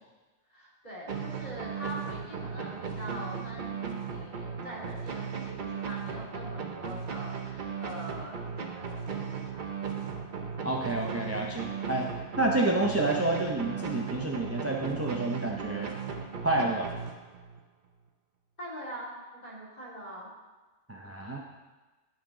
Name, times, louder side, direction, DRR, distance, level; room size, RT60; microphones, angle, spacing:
voice 1, 0.5-9.6 18.6-20.3, equal, 30° left, -5 dB, 2.6 m, -43 dB
sound 1, 1.1-17.6, right 6 dB, 45° right, 0.8 m, -37 dB
voice 2, 10.6-12.1 12.4-15.9 16.4-16.9 20.9-21.4, right 2 dB, 20° right, -1 dB, 0.4 m, -29 dB
11.5 x 5.7 x 3.8 m, 1.2 s
omnidirectional pair, 1.3 m